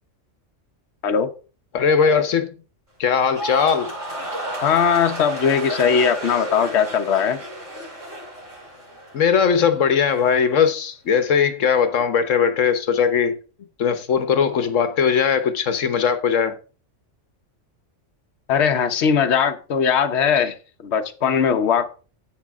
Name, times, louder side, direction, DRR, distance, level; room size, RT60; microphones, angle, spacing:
voice 1, 1.7-2.5 3.0-3.9 9.1-13.4 13.8-16.6, left 6 dB, 85° left, 1.3 m, -19 dB
sound 1, 3.1-9.5 9.8-10.3, right 1 dB, 85° right, 6.5 m, -32 dB
voice 2, 4.6-7.4 18.5-20.5 20.8-21.9, left 7 dB, 65° left, 1.2 m, -19 dB
10.5 x 8.2 x 3.5 m
omnidirectional pair, 1.3 m